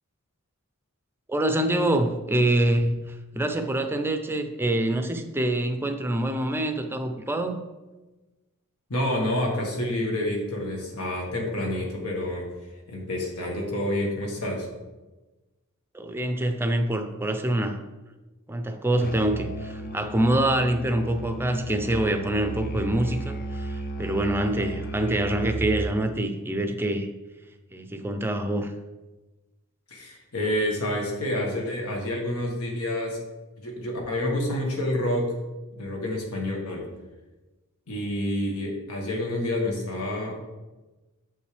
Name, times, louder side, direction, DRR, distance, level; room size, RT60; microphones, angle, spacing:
voice 1, 1.3-7.6 15.9-17.8 18.5-27.1 27.7-28.7, right 1 dB, 10° right, 6 dB, 0.5 m, -25 dB
voice 2, 8.9-12.5 12.9-14.7 29.9-33.2 33.6-35.3 35.8-36.9 37.9-40.4, left 1 dB, 80° left, 0 dB, 1.6 m, -28 dB
Musical instrument, 19.0-26.0, right 1 dB, 40° left, 0.5 m, -34 dB
7.5 x 5.3 x 3.3 m, 1.1 s
head